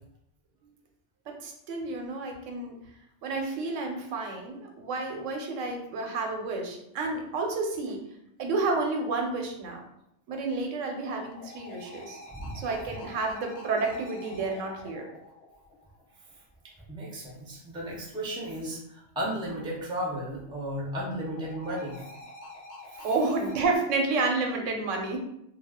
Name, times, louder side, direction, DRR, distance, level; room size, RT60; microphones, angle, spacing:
voice 1, 1.3-2.7 3.2-8.0 8.4-9.8 10.3-12.2 12.5-15.0 23.0-25.2, right 3 dB, 90° right, 2 dB, 1.0 m, -30 dB
sound 1, 10.8-16.4 19.9-23.8, left 2 dB, 65° left, 0.7 m, -47 dB
voice 2, 16.9-22.0 22.9-23.1, equal, 5° right, -4 dB, 0.4 m, -34 dB
2.4 x 2.2 x 3.5 m, 0.78 s
omnidirectional pair, 1.3 m